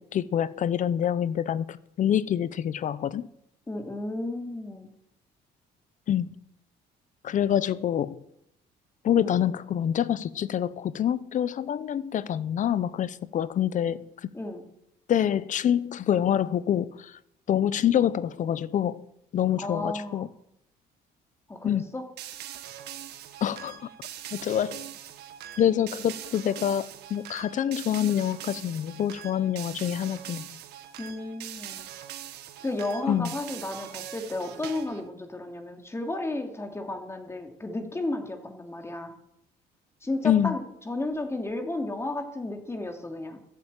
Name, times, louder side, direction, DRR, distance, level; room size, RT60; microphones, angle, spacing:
voice 1, 0.1-3.3 6.1-6.3 7.2-8.2 9.0-14.1 15.1-16.9 17.5-19.0 19.3-20.3 21.6-21.8 23.4-23.8 24.3-24.8 25.6-30.5 33.1-33.3 40.2-40.6, left 10 dB, 50° left, 0.8 m, -26 dB
voice 2, 3.7-4.9 9.2-9.4 14.3-14.6 19.6-20.3 21.5-22.0 31.0-31.8 32.6-39.1 40.0-43.4, left 2 dB, 15° left, 2.7 m, -33 dB
sound 1, 22.2-35.1, right 11 dB, 80° right, 1.6 m, -42 dB
14.0 x 8.5 x 8.9 m
cardioid pair, 110°, 17 cm